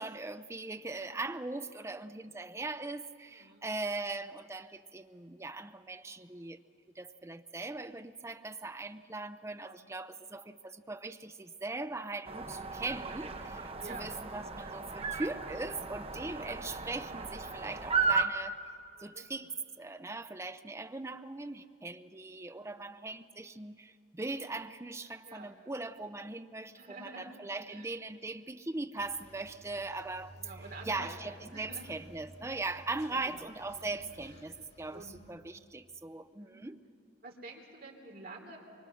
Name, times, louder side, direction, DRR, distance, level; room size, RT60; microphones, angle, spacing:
voice 1, 0.0-6.6 7.0-18.6 19.0-30.3 30.8-36.8, right 3 dB, 15° right, 10 dB, 0.5 m, -40 dB
voice 2, 3.3-3.7 9.5-9.9 13.8-14.2 16.3-16.5 19.0-19.3 22.5-22.8 25.2-25.6 26.7-27.4 27.7-27.9 30.3-31.2 31.5-31.9 33.1-33.5 33.8-34.0 34.9-35.2 36.4-36.7 37.2-38.6, right 3 dB, 50° right, -1 dB, 3.2 m, -49 dB
sound 1, 12.3-18.2, right 5 dB, 30° right, 0.9 m, -35 dB
sound 2, 29.0-35.3, equal, 35° left, 1.8 m, -54 dB
24.0 x 23.5 x 6.3 m, 2.4 s
head